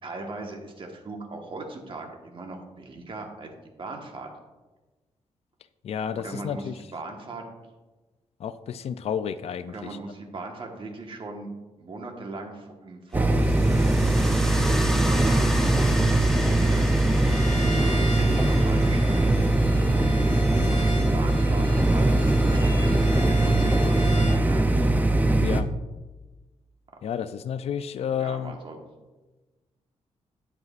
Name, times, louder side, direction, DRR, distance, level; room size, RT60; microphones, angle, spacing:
voice 1, 0.0-3.5 3.8-4.3 6.1-7.4 9.6-11.5 11.8-13.9 14.9-15.6 16.2-17.0 18.0-19.3 20.5-24.7 28.2-28.8, right 3 dB, 45° right, 2 dB, 1.4 m, -38 dB
voice 2, 5.8-6.8 8.4-10.0 20.3-20.5 25.4-25.7 27.0-28.6, left 8 dB, 60° left, 12 dB, 0.4 m, -31 dB
sound 1, 13.1-25.6, right 1 dB, 15° right, 0.5 m, -21 dB
sound 2, 13.3-20.2, equal, 5° left, 0.9 m, -35 dB
Bowed string instrument, 17.2-24.5, left 1 dB, 35° left, 1.3 m, -38 dB
9.3 x 8.1 x 2.5 m, 1.2 s
cardioid pair, 100°, 12 cm